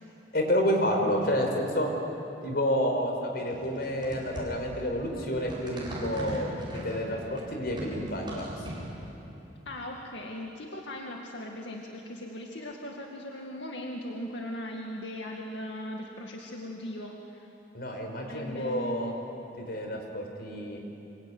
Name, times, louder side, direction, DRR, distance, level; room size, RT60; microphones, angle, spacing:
voice 1, 0.3-1.9 2.4-8.6 17.7-19.1 19.6-20.8, equal, 60° left, 2 dB, 5.0 m, -29 dB
sound 1, 3.5-9.1, equal, 25° right, 8.0 m, -40 dB
voice 2, 9.7-17.5 18.3-19.1, equal, 90° left, 0 dB, 2.2 m, -39 dB
26.0 x 23.0 x 9.7 m, 3.0 s
head